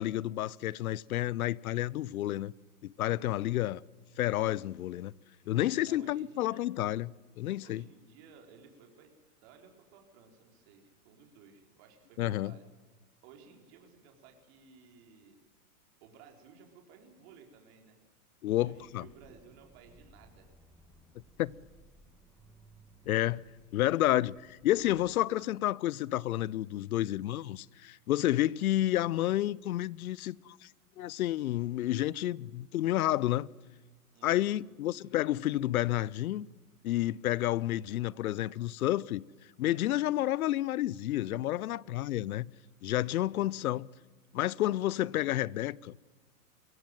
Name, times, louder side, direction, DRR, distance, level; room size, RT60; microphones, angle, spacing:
voice 1, 0.0-2.5 2.8-3.8 4.2-5.1 5.5-7.1 7.4-7.8 12.2-12.5 18.4-19.1 21.4-21.5 23.1-23.4 23.7-30.7 31.0-33.5 34.2-36.5 36.8-39.2 39.6-42.5 42.8-43.9 44.3-46.0, left 14 dB, 75° left, 0.7 m, -30 dB
voice 2, 5.9-6.7 7.6-9.1 9.4-12.6 13.2-15.4 16.0-18.0 18.6-20.5 34.1-34.6, right 6 dB, 45° right, 4.5 m, -57 dB
Accelerating revving vroom, 18.6-25.2, right 1 dB, ahead, 1.7 m, -60 dB
23.0 x 16.5 x 9.2 m
hypercardioid pair, 145°, 44 cm